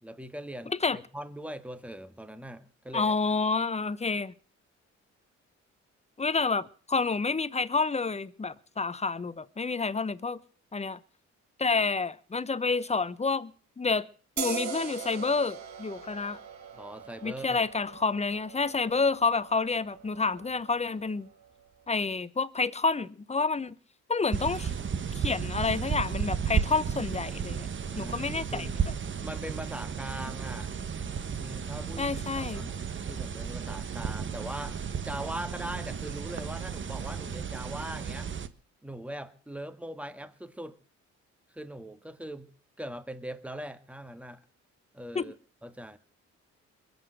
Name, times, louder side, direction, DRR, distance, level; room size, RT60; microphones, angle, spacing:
voice 1, 0.0-3.1 16.7-17.6 27.9-28.9 29.2-30.7 31.4-32.7 33.1-38.3 38.8-40.8 41.5-42.5 42.8-44.4 44.9-45.3 45.6-46.0, right 1 dB, 5° right, 1.6 m, -41 dB
voice 2, 2.9-4.3 6.2-10.4 10.7-11.0 11.6-13.5 13.8-14.1 14.4-16.4 17.2-21.3 21.9-23.8 24.1-24.7 25.2-27.7 28.0-28.7 32.0-32.7 45.1-45.3, left 4 dB, 20° left, 0.9 m, -29 dB
sound 1, 14.4-21.7, right 7 dB, 65° right, 2.8 m, -41 dB
sound 2, 24.3-38.5, right 7 dB, 40° right, 1.3 m, -33 dB
22.0 x 8.1 x 7.9 m
cardioid pair, 90°, 30 cm